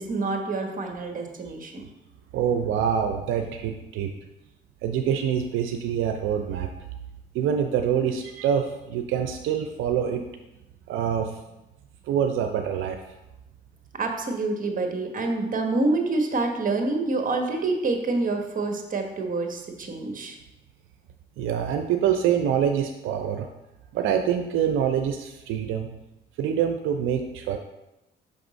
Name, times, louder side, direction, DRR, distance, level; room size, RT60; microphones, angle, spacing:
voice 1, 0.0-1.8 14.0-20.4, right 3 dB, 45° right, 4 dB, 1.1 m, -27 dB
voice 2, 2.3-4.1 4.8-6.7 7.3-10.2 10.9-11.4 12.1-13.0 21.4-23.5 23.9-25.9 26.4-27.6, right 8 dB, 85° right, 6 dB, 0.5 m, -25 dB
5.6 x 3.5 x 5.1 m, 0.94 s
cardioid pair, 90°, 20 cm